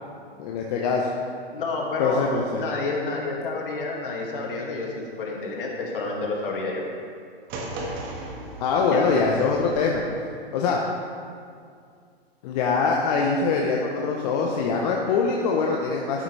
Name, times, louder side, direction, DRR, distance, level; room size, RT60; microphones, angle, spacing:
voice 1, 0.4-1.1 2.0-2.6 8.6-10.0 10.5-10.8 12.4-16.2, left 4 dB, 40° left, -1 dB, 1.0 m, -23 dB
voice 2, 1.5-2.3 2.6-6.8 8.9-9.1, left 3 dB, 55° left, -1 dB, 2.4 m, -29 dB
sound 1, 7.5-9.8, right 2 dB, 30° right, 1.7 m, -36 dB
12.0 x 9.6 x 3.4 m, 2.2 s
hypercardioid pair, 125°, 32 cm